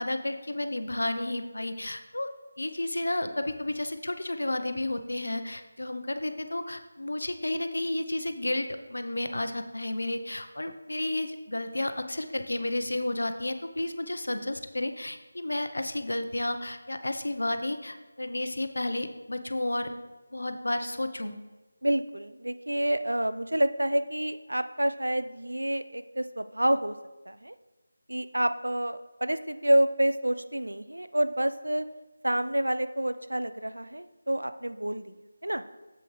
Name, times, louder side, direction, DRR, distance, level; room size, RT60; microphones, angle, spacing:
voice 1, 0.0-2.3 2.6-19.9 20.3-21.3, left 1 dB, 75° left, 8 dB, 0.7 m, -32 dB
voice 2, 21.8-27.0 27.3-27.5 28.1-31.9 32.2-35.2 35.4-35.6, right 1 dB, 90° right, 11 dB, 0.5 m, -28 dB
7.7 x 7.6 x 3.3 m, 1.1 s
figure-of-eight pair, 165°, 0 cm